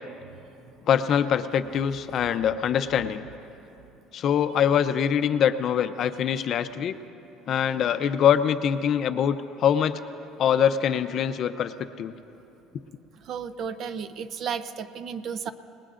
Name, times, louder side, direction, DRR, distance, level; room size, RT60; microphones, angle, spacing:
voice 1, 0.9-3.3 4.1-6.9 7.5-10.0 10.4-12.1, left 8 dB, 45° left, 10 dB, 0.6 m, -24 dB
voice 2, 13.1-15.5, right 7 dB, 45° right, 12 dB, 0.6 m, -33 dB
28.5 x 19.5 x 2.5 m, 3.0 s
cardioid pair, 145°, 0 cm